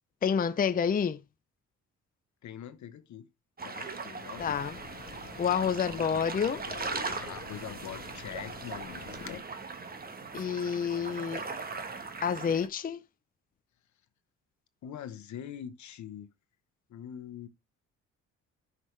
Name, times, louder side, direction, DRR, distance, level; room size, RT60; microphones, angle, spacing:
voice 1, 0.2-1.2 4.4-4.8 5.4-6.6 10.3-11.4 12.2-13.0, left 7 dB, 30° left, 0.6 m, -28 dB
voice 2, 2.4-3.3 3.6-4.6 5.5-6.4 7.1-9.4 14.8-16.3 16.9-17.5, left 10 dB, 70° left, 1.1 m, -44 dB
sound 1, 3.6-12.7, right 4 dB, 30° right, 1.3 m, -39 dB
sound 2, 4.3-9.4, left 7 dB, 45° left, 1.0 m, -47 dB
9.7 x 5.5 x 3.3 m
cardioid pair, 90°, 30 cm